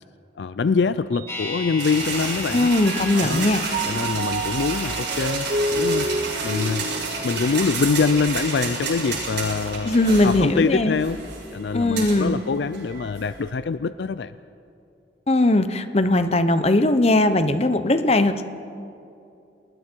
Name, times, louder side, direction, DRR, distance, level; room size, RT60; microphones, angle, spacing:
voice 1, 0.4-2.7 3.1-3.5 3.9-6.1 6.4-6.9 7.2-11.2 11.5-14.3, left 5 dB, 65° left, 14 dB, 0.4 m, -24 dB
Mallet percussion, 1.1-2.5 2.8-8.3, right 1 dB, 55° right, 0.8 m, -30 dB
sound 1, 1.3-11.3 11.6-11.7, left 2 dB, 15° left, 3.5 m, -39 dB
sound 2, 1.8-13.5, right 4 dB, 75° right, 6.9 m, -31 dB
voice 2, 2.5-3.6 9.8-11.0 11.7-12.4 15.3-18.4, left 2 dB, 35° left, 10 dB, 0.9 m, -19 dB
30.0 x 20.0 x 4.6 m, 2.7 s
head